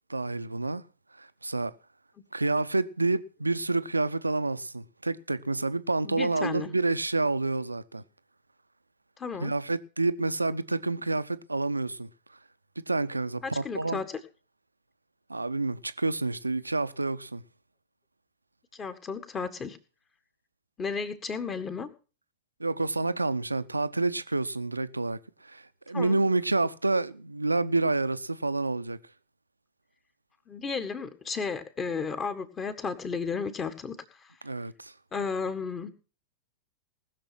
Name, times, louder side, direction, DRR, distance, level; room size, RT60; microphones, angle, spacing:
voice 1, 0.1-0.8 1.2-1.7 2.3-8.0 9.4-12.1 12.9-14.0 15.3-17.4 22.6-29.0 34.4-34.9, right 3 dB, 80° right, 0.6 m, -28 dB
voice 2, 6.0-6.7 9.2-9.5 13.4-14.1 18.7-19.8 20.8-21.9 25.9-26.2 30.5-33.9 34.2-34.3 35.1-35.9, left 5 dB, 25° left, 1.8 m, -33 dB
19.5 x 6.8 x 6.0 m
figure-of-eight pair, 90°, 0 cm